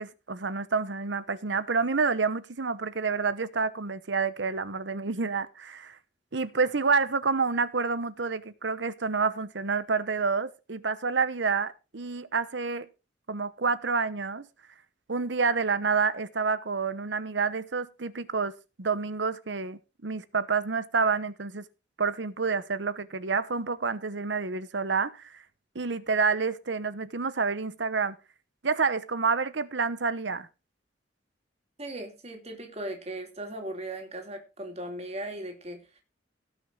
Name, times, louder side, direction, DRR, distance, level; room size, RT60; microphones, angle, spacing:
voice 1, 0.0-6.0 6.3-12.9 13.3-14.5 15.1-18.5 18.8-21.6 22.0-25.4 25.7-28.2 28.6-30.5, right 4 dB, 70° right, 0.9 m, -28 dB
voice 2, 31.8-36.0, right 1 dB, 35° right, 2.8 m, -38 dB
18.0 x 6.2 x 3.8 m
head